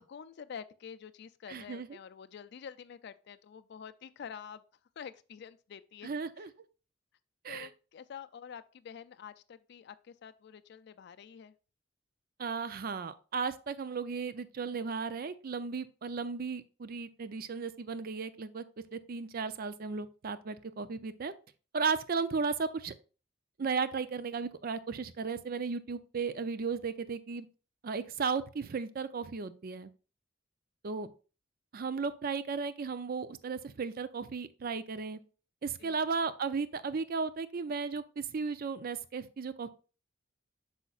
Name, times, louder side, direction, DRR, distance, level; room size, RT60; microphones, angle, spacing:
voice 1, 0.1-4.6 5.0-6.1 6.4-6.5 7.5-11.5 35.8-36.0, left 7 dB, 60° left, 0.4 m, -47 dB
voice 2, 1.5-1.9 6.0-6.5 7.4-7.7 12.4-18.6 18.9-21.3 21.7-22.9 23.6-27.5 27.8-29.9 30.8-31.1 31.7-35.2 35.6-39.7, right 5 dB, 50° right, 0.5 m, -35 dB
8.2 x 5.6 x 2.4 m
head